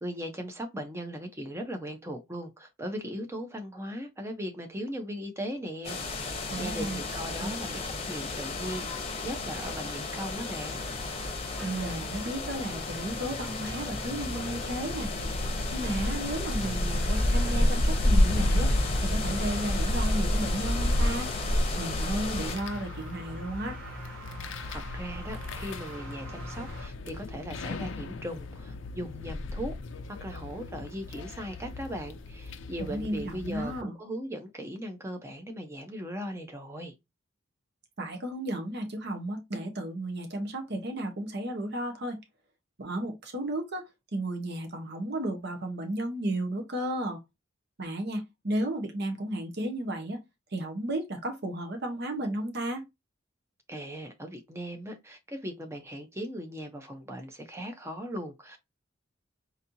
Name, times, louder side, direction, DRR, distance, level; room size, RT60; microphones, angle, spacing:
voice 1, 0.0-8.9 9.2-10.8 24.7-29.7 30.1-36.9 53.7-58.6, equal, 15° right, 0.7 m, -38 dB
sound 1, 5.8-22.6, left 1 dB, 30° left, 0.8 m, -29 dB
voice 2, 6.5-7.0 7.4-7.5 11.6-15.1 15.7-18.7 19.0-21.3 21.8-23.8 32.8-33.9 38.0-42.2 42.8-47.2 47.8-50.2 50.5-52.8, right 1 dB, 55° right, 0.9 m, -33 dB
sound 2, 10.6-26.9, right 1 dB, 85° right, 1.2 m, -45 dB
sound 3, 14.1-33.8, left 2 dB, 65° left, 0.5 m, -40 dB
4.1 x 2.7 x 2.7 m
head